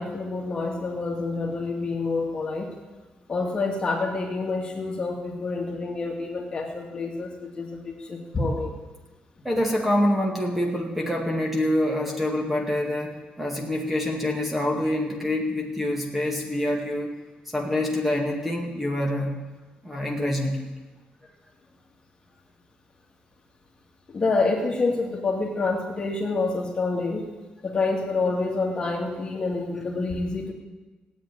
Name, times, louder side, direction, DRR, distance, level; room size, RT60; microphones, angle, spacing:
voice 1, 0.0-2.7 3.3-8.7 24.1-27.3 27.6-30.5, left 3 dB, 30° left, 1 dB, 2.4 m, -27 dB
voice 2, 9.4-17.1 17.5-19.3 19.8-20.6, left 1 dB, 5° right, 0 dB, 2.1 m, -26 dB
16.5 x 8.8 x 9.8 m, 1.2 s
cardioid pair, 150°, 3 cm